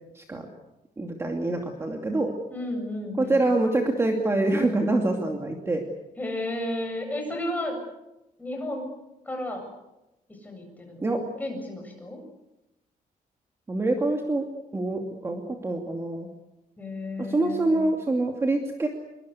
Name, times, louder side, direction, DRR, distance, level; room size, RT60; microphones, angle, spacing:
voice 1, 0.1-0.5 1.0-2.3 3.2-5.8 11.0-11.2 13.7-14.5 14.7-16.3 17.2-18.9, right 2 dB, 15° right, 2 dB, 2.6 m, -25 dB
voice 2, 2.5-3.4 6.2-7.8 8.4-8.9 9.2-9.6 10.4-11.1 11.4-12.2 16.8-17.8, left 1 dB, 10° left, 2 dB, 7.8 m, -33 dB
26.5 x 24.0 x 8.3 m, 0.93 s
cardioid pair, 175°, 15 cm